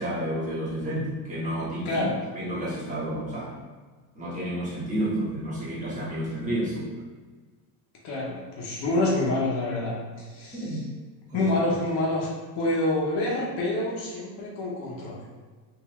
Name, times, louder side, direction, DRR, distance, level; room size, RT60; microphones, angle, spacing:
voice 1, 0.0-2.0 2.3-3.5 4.1-6.9 10.5-10.8 11.3-11.5, right 1 dB, 15° right, -8 dB, 1.0 m, -30 dB
voice 2, 1.8-2.2 8.0-10.8 11.3-12.3 12.5-15.1, left 2 dB, 55° left, -4 dB, 0.9 m, -27 dB
3.5 x 2.6 x 3.0 m, 1.4 s
cardioid pair, 155°, 49 cm